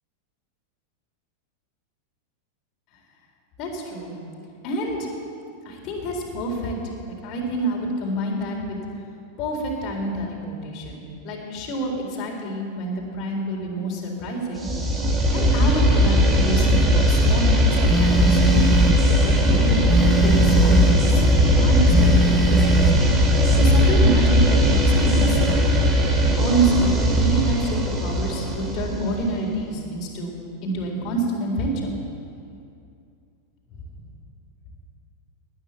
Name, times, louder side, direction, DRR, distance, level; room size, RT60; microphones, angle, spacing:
voice 1, 3.6-4.1 4.6-5.1 5.6-6.8 7.1-8.6 9.4-14.7 15.3-18.6 19.2-22.8 23.5-25.8 26.2-30.4 30.6-31.9, right 1 dB, 35° left, -1 dB, 4.1 m, -27 dB
sound 1, 14.6-29.4, equal, 20° right, 2.4 m, -18 dB
Telephone, 17.9-19.0 19.9-21.0 21.9-23.0, right 2 dB, ahead, 1.4 m, -23 dB
20.0 x 9.8 x 7.2 m, 2.5 s
figure-of-eight pair, 90°, 0 cm